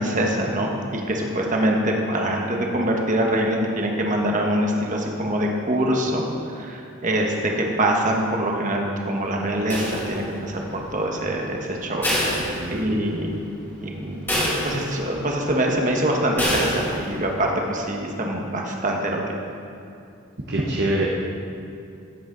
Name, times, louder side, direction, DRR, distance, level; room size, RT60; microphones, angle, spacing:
voice 1, 0.0-6.2 6.5-13.4 13.8-14.1 14.6-19.2, right 1 dB, 35° right, 0 dB, 1.3 m, -24 dB
sound 1, 9.7-10.5 12.0-13.2 13.6-13.7 14.3-15.2 16.4-17.2, equal, 10° left, 2.2 m, -26 dB
voice 2, 12.4-13.0 20.5-21.1, right 1 dB, 50° right, -3 dB, 1.0 m, -25 dB
16.0 x 8.1 x 3.9 m, 2.6 s
head